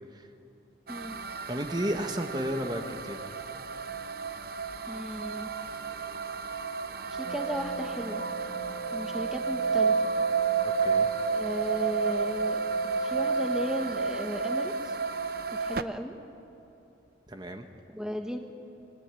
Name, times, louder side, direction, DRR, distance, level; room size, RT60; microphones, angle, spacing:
sound 1, 0.9-15.8, right 5 dB, 50° right, 0.8 m, -31 dB
voice 1, 1.5-3.2 10.6-11.1 17.3-17.7, equal, 20° right, 5 dB, 1.3 m, -33 dB
voice 2, 4.9-5.5 7.1-8.2 8.9-10.0 11.3-12.6 13.0-15.0 15.6-16.2 17.9-18.4, equal, 5° right, 4 dB, 1.3 m, -35 dB
sound 2, 7.2-14.6, right 2 dB, 55° left, 1.4 m, -43 dB
28.5 x 22.0 x 9.1 m, 2.8 s
head